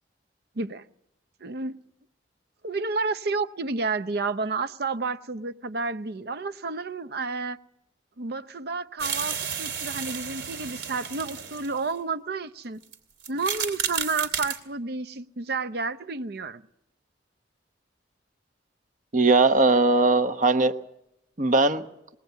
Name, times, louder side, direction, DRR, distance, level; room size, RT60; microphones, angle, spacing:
voice 1, 1.4-1.8 2.6-7.6 8.2-12.8 13.3-16.6, right 4 dB, 60° right, 0.7 m, -30 dB
sound 1, 9.0-11.9 12.8-12.9 13.2-14.6, right 7 dB, 80° right, 2.7 m, -32 dB
voice 2, 19.1-20.7 21.4-21.8, right 3 dB, 45° right, 1.1 m, -19 dB
21.5 x 18.0 x 8.2 m
head